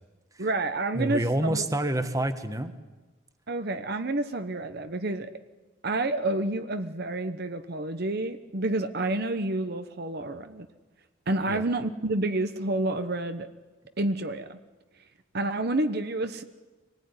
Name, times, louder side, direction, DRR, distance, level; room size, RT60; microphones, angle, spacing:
voice 1, 0.4-1.6 3.5-5.3 5.8-10.7 11.3-13.5 14.0-14.6 15.3-16.4, right 2 dB, 50° right, 9 dB, 1.1 m, -29 dB
voice 2, 0.9-2.7 11.5-11.6, right 1 dB, 15° right, 9 dB, 1.3 m, -28 dB
25.5 x 19.0 x 9.7 m, 1.2 s
head